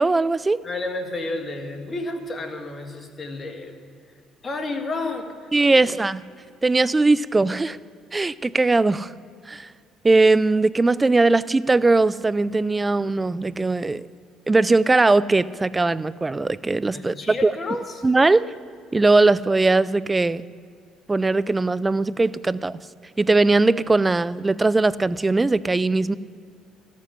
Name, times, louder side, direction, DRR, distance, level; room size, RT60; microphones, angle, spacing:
voice 1, 0.0-0.6 5.5-6.2 6.6-7.8 8.1-9.1 9.5-9.7 10.0-14.1 14.5-17.5 18.0-18.5 18.9-20.4 21.1-22.8 23.2-26.1, right 3 dB, 20° right, 18 dB, 0.4 m, -20 dB
voice 2, 0.6-3.9 4.4-5.9 16.9-18.0, left 2 dB, 35° left, 5 dB, 1.8 m, -31 dB
14.0 x 7.4 x 9.8 m, 2.2 s
supercardioid pair, 65°, 0 cm